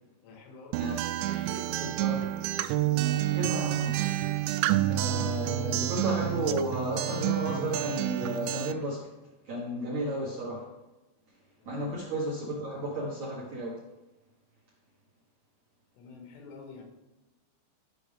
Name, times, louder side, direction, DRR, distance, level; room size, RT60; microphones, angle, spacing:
voice 1, 0.2-1.9 11.6-11.9 15.9-16.8, left 4 dB, 90° left, 0 dB, 4.3 m, -48 dB
Acoustic guitar, 0.7-8.7, right 14 dB, 85° right, 2.8 m, -29 dB
voice 2, 1.8-2.2 2.9-4.1 4.8-9.1 9.5-10.7 11.7-13.8, right 1 dB, 60° right, -6 dB, 1.9 m, -33 dB
13.0 x 6.1 x 3.5 m, 1.0 s
omnidirectional pair, 5.5 m